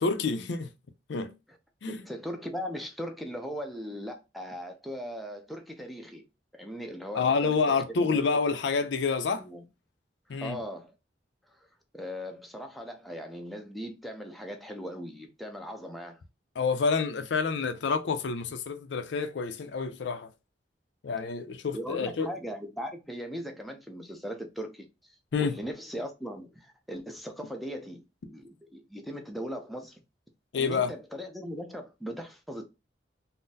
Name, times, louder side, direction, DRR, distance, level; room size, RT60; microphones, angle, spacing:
voice 1, 0.0-0.7 1.1-1.3 1.8-2.0 7.1-9.4 10.3-10.6 16.6-20.3 21.0-22.3 25.3-25.5 30.5-30.9, left 5 dB, 85° left, 0.5 m, -28 dB
voice 2, 1.8-6.2 6.5-7.8 8.1-8.2 9.4-9.6 10.4-10.9 11.9-16.2 21.7-30.0 30.6-32.6, equal, ahead, 0.5 m, -39 dB
3.7 x 2.0 x 2.7 m
head